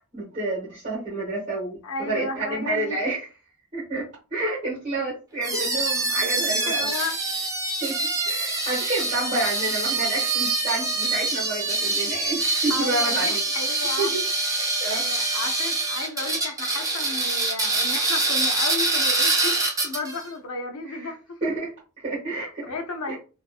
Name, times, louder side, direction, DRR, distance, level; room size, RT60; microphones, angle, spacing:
voice 1, 0.1-1.8 2.1-3.3 3.7-6.9 7.8-8.0 8.2-13.4 14.0-14.2 14.6-15.4 20.9-21.1 21.4-21.7 22.0-22.7 23.1-23.2, right 2 dB, 35° right, 1.2 m, -29 dB
voice 2, 1.8-3.0 5.5-5.7 6.2-6.4 6.7-7.2 9.3-9.4 12.7-14.2 14.9-21.5 22.3-23.1, left 3 dB, 75° left, 0.5 m, -33 dB
sound 1, 5.4-20.2, right 2 dB, 15° right, 0.5 m, -25 dB
2.6 x 2.3 x 2.3 m
head